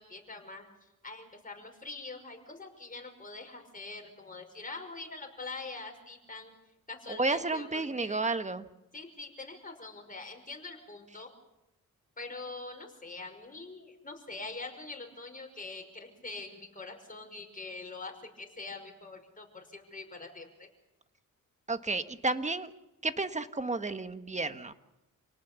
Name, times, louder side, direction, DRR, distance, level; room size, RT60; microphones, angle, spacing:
voice 1, 0.0-6.5 6.9-8.2 8.9-11.3 12.2-20.7, left 3 dB, 25° left, 3 dB, 5.9 m, -44 dB
voice 2, 7.1-8.7 21.7-22.7 23.0-24.7, right 3 dB, 20° right, 9 dB, 1.5 m, -32 dB
28.5 x 18.5 x 7.1 m, 0.96 s
cardioid pair, 85°, 32 cm